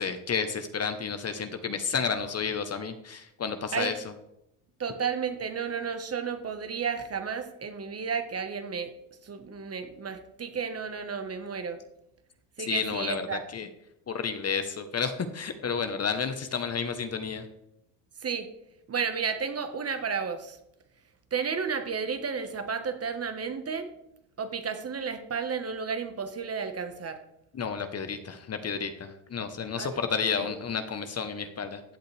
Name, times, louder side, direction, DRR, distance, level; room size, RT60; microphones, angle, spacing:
voice 1, 0.0-4.1 12.7-13.7 14.1-17.5 27.5-31.8, left 6 dB, 30° left, 9 dB, 1.1 m, -31 dB
voice 2, 4.8-8.9 9.2-11.8 12.6-13.4 18.2-18.5 18.9-20.6 21.3-23.9 24.4-27.2 29.8-30.0 30.4-30.5, right 6 dB, 30° right, 8 dB, 1.5 m, -32 dB
15.0 x 8.0 x 3.4 m, 0.83 s
hypercardioid pair, 80°, 48 cm